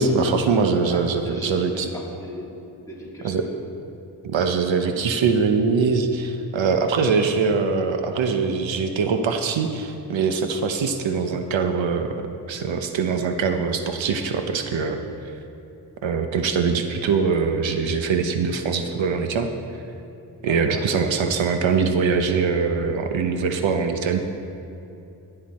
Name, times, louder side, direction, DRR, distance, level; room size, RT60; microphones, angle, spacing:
voice 1, 0.0-1.9 3.2-3.4 4.2-12.1 12.5-15.0 16.0-19.5 20.4-24.2, right 5 dB, 80° right, 6 dB, 1.0 m, -22 dB
voice 2, 0.7-3.4 20.4-20.9, left 1 dB, 5° left, -6 dB, 3.3 m, -39 dB
16.5 x 10.0 x 4.3 m, 2.8 s
cardioid pair, 100°, 45 cm